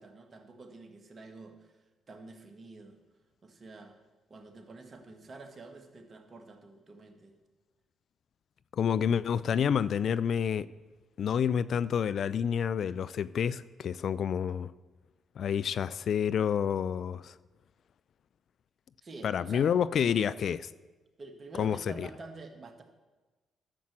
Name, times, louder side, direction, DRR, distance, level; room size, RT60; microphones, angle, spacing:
voice 1, 0.0-3.0 3.4-4.0 4.3-7.4 19.0-19.7 21.2-22.8, right 3 dB, 40° right, 1.8 m, -48 dB
voice 2, 8.7-10.7 11.2-14.7 15.4-17.3 19.2-20.7 21.6-22.1, left 8 dB, 60° left, 0.3 m, -29 dB
11.5 x 7.4 x 7.3 m
hypercardioid pair, 45°, 0 cm